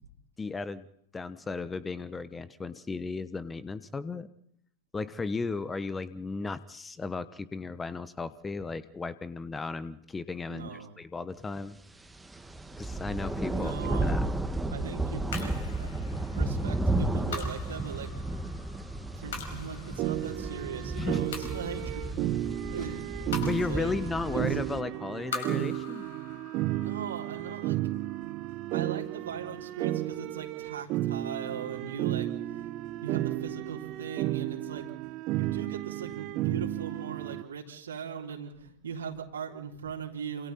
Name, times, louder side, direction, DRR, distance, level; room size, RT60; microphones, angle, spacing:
voice 1, 0.4-0.9 1.1-4.3 4.9-11.8 12.8-13.8 14.0-14.2 20.9-21.3 21.6-21.7 23.4-26.0, left 4 dB, 15° left, 16 dB, 1.1 m, -35 dB
voice 2, 10.5-11.0 13.5-14.2 14.7-18.1 19.2-22.0 22.7-23.9 26.8-27.8 28.7-32.6 33.0-34.8 35.3-40.5, right 6 dB, 70° right, -1 dB, 3.6 m, -40 dB
sound 1, 12.1-24.8, right 2 dB, 5° right, 1.8 m, -33 dB
sound 2, 15.3-29.8, left 4 dB, 60° left, 5.5 m, -45 dB
sound 3, 20.0-37.4, right 15 dB, 40° right, 1.1 m, -33 dB
29.0 x 27.0 x 4.3 m, 0.72 s
figure-of-eight pair, 90°, 0 cm